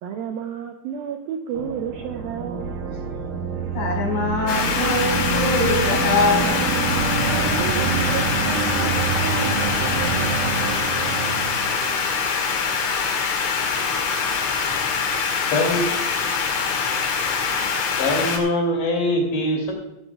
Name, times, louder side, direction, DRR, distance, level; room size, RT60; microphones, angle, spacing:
voice 1, 0.0-2.7 7.2-9.7, right 7 dB, 80° right, 4 dB, 2.2 m, -31 dB
sound 1, 1.5-12.1, right 5 dB, 60° right, 2.5 m, -26 dB
voice 2, 3.7-6.6, left 3 dB, 45° left, -2 dB, 6.4 m, -23 dB
sound 2, 4.5-18.4, left 5 dB, 85° left, 4.6 m, -24 dB
voice 3, 15.5-15.8 16.2-16.3 18.0-19.7, left 1 dB, 70° left, 1 dB, 5.4 m, -22 dB
15.5 x 14.5 x 2.4 m, 0.93 s
omnidirectional pair, 5.3 m